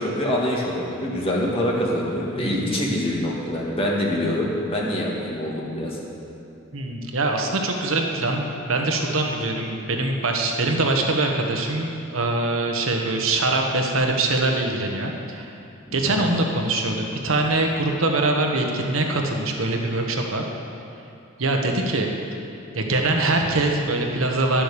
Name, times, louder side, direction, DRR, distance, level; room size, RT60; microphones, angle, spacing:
voice 1, 0.0-6.0 16.1-16.3, left 1 dB, 25° left, -3 dB, 1.9 m, -25 dB
voice 2, 6.7-15.5 15.9-20.5 21.4-22.1 22.7-24.6, right 2 dB, 75° right, 2 dB, 1.2 m, -23 dB
11.5 x 7.7 x 6.8 m, 2.7 s
head